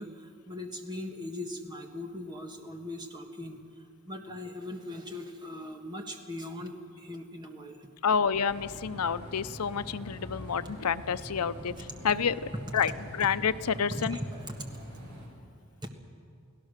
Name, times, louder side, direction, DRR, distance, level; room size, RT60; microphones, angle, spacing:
voice 1, 0.0-3.6 4.0-7.9 11.7-11.8 13.9-14.7 15.8-15.9, left 1 dB, 20° right, 4 dB, 1.6 m, -39 dB
voice 2, 8.0-11.7 12.0-12.9 13.2-14.2, left 6 dB, 90° left, 14 dB, 0.7 m, -29 dB
sound 1, 8.5-15.3, equal, 50° right, 5.9 m, -45 dB
29.0 x 17.5 x 6.6 m, 2.5 s
head